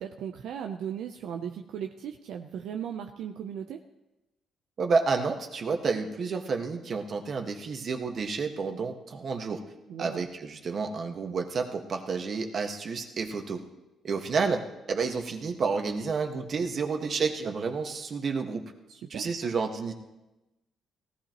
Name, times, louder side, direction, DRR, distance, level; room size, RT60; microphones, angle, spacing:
voice 1, 0.0-3.8 9.9-10.3 18.9-19.5, right 8 dB, 80° right, 5 dB, 0.7 m, -37 dB
voice 2, 4.8-9.6 10.0-13.6 14.0-18.6 19.1-19.9, right 4 dB, 50° right, 4 dB, 1.6 m, -30 dB
18.5 x 14.5 x 3.1 m, 1.0 s
cardioid pair, 90°, 0 cm